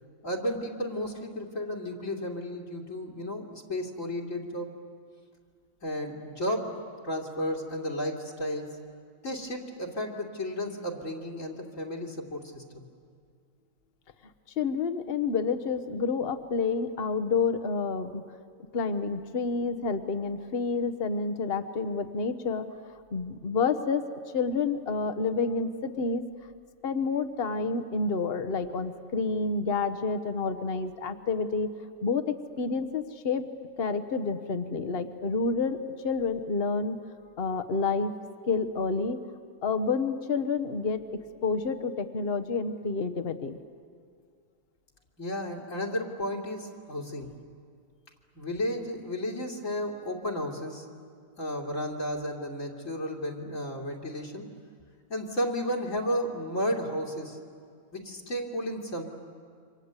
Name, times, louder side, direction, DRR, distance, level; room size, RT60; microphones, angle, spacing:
voice 1, 0.2-4.7 5.8-8.8 9.2-12.8 45.2-47.3 48.3-50.9 51.4-54.5 55.1-57.4 57.9-59.0, equal, 70° left, -2 dB, 3.1 m, -33 dB
voice 2, 14.6-18.2 18.7-22.7 23.1-24.0 24.3-26.2 26.8-31.7 32.0-33.5 33.8-37.0 37.4-38.1 38.5-39.2 39.6-41.0 41.4-43.6, left 4 dB, 45° left, 10 dB, 1.3 m, -29 dB
28.5 x 25.5 x 8.2 m, 2.2 s
omnidirectional pair, 1.4 m